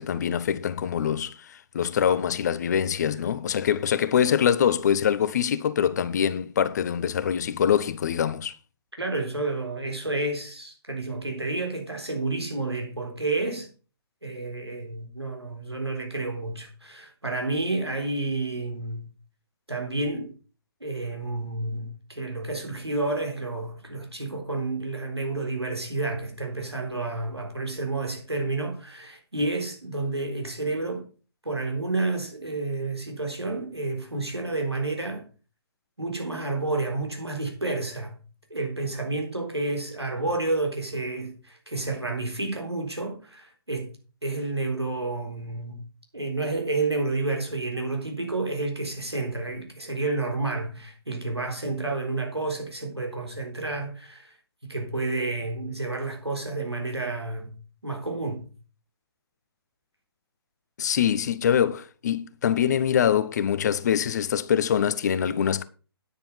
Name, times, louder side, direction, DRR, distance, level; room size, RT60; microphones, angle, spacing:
voice 1, 0.0-8.6 60.8-65.6, left 8 dB, 40° left, 0.8 m, -24 dB
voice 2, 8.9-13.7 14.2-19.1 19.7-20.3 20.8-31.0 31.4-35.2 36.0-38.2 38.5-43.9 44.2-45.8 46.1-54.3 54.6-57.5 57.8-58.5, right 2 dB, 85° right, 3.9 m, -30 dB
10.0 x 7.0 x 5.5 m
figure-of-eight pair, 130°, 13 cm